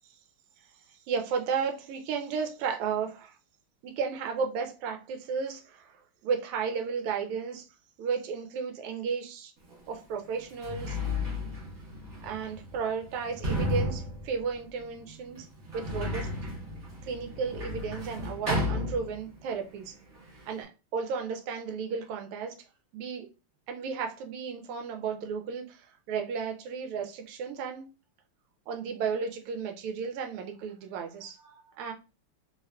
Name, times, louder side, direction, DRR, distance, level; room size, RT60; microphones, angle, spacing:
voice 1, 0.9-3.3 3.8-7.6 8.0-9.5 9.9-11.0 12.2-15.5 15.7-16.3 17.0-19.9 20.5-22.5 22.9-23.3 23.7-27.9 28.7-31.9, right 6 dB, 90° right, 1.5 m, -33 dB
Sliding door, 9.7-9.8 10.4-19.6 19.8-20.6, left 2 dB, 40° right, 1.4 m, -34 dB
3.5 x 3.1 x 2.2 m
omnidirectional pair, 2.4 m